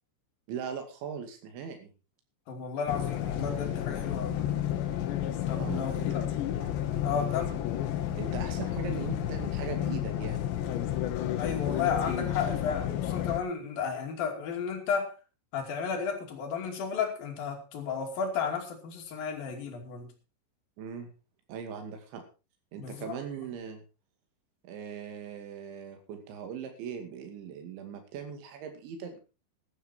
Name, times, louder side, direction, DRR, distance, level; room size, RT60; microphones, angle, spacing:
voice 1, 0.5-1.9 5.6-6.1 8.2-10.4 20.8-21.1 21.5-22.2 22.7-23.8 24.6-29.2, right 7 dB, 70° right, 5 dB, 4.6 m, -39 dB
voice 2, 2.5-4.4 5.4-6.2 7.0-7.6 11.3-15.1 15.5-20.1 22.8-23.2, left 6 dB, 50° left, 3 dB, 4.0 m, -33 dB
sound 1, 2.9-13.4, left 11 dB, 70° left, 3.2 m, -31 dB
14.0 x 11.5 x 4.4 m, 0.32 s
omnidirectional pair, 5.7 m